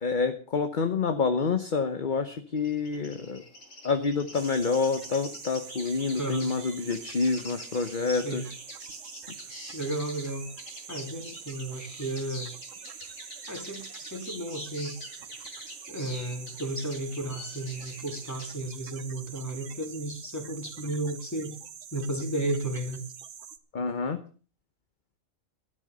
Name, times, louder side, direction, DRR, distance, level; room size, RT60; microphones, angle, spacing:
voice 1, 0.0-3.4 3.8-8.5 23.7-24.2, left 4 dB, 40° left, 8 dB, 1.1 m, -28 dB
sound 1, 2.6-18.5, left 1 dB, 85° left, 5.9 m, -46 dB
sound 2, 4.3-23.6, right 8 dB, 70° right, 1.3 m, -45 dB
voice 2, 6.2-6.5 8.0-8.5 9.7-10.5 10.9-12.5 13.5-15.0 15.9-21.6 21.9-23.0, right 1 dB, 10° left, 3 dB, 3.3 m, -33 dB
13.0 x 10.0 x 6.7 m, 0.39 s
omnidirectional pair, 1.4 m